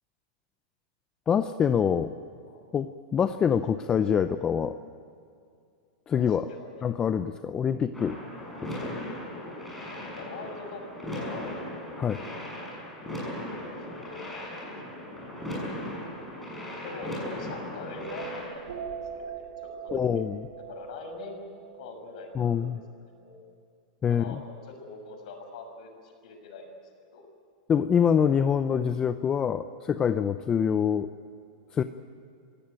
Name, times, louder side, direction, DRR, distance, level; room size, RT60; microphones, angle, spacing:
voice 1, 1.3-2.1 2.7-4.8 6.1-6.5 6.8-8.2 8.8-8.9 12.0-12.2 19.9-20.5 22.3-22.8 24.0-24.4 27.7-31.1 31.7-31.8, left 7 dB, 20° left, 10 dB, 0.6 m, -25 dB
voice 2, 6.2-6.9 9.4-9.8 10.1-11.6 13.9-14.6 15.0-15.4 16.8-19.5 19.8-20.0 20.7-21.5 21.8-23.4 24.1-26.7 27.1-27.3, left 3 dB, 65° left, 4 dB, 6.3 m, -43 dB
sound 1, 7.9-18.5, left 1 dB, 5° left, 6.5 m, -37 dB
sound 2, 18.0-22.8, right 6 dB, 85° right, 2.3 m, -41 dB
26.5 x 17.0 x 9.0 m, 2.4 s
supercardioid pair, 155°, 4 cm